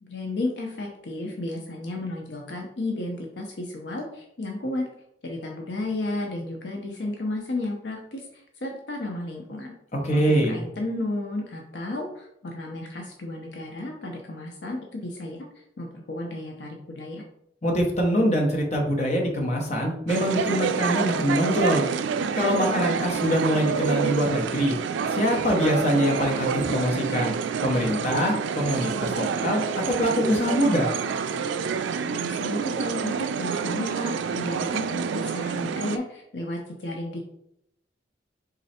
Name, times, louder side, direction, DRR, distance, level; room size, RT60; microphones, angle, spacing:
voice 1, 0.0-4.8 5.2-9.7 10.1-15.5 15.8-17.2 32.0-37.2, left 1 dB, 65° left, 1 dB, 0.6 m, -33 dB
voice 2, 9.9-10.6 17.6-21.8 22.3-24.8 25.1-27.3 27.6-29.6 30.0-30.9, equal, 40° left, 0 dB, 1.0 m, -24 dB
sound 1, 20.1-36.0, right 6 dB, 80° right, 0.3 m, -28 dB
3.8 x 3.2 x 4.2 m, 0.78 s
head